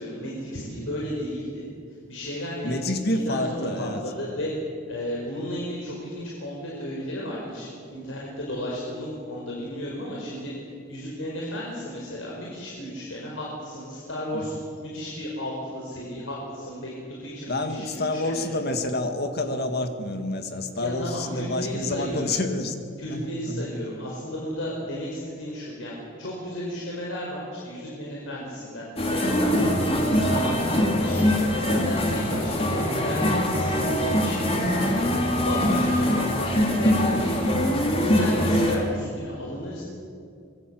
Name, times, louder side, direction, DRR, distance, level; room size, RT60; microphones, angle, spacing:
voice 1, 0.0-1.6 2.1-2.9 3.1-4.5 4.9-10.5 10.9-18.4 20.8-22.2 23.0-31.3 31.7-35.0 35.4-37.4 38.0-39.8, equal, 75° left, -4 dB, 5.5 m, -34 dB
voice 2, 2.6-4.1 14.3-14.6 17.5-22.8 23.1-23.7, left 2 dB, 50° left, 6 dB, 2.1 m, -28 dB
sound 1, 29.0-38.8, equal, 30° left, 3.5 m, -23 dB
25.0 x 23.0 x 7.8 m, 2.4 s
head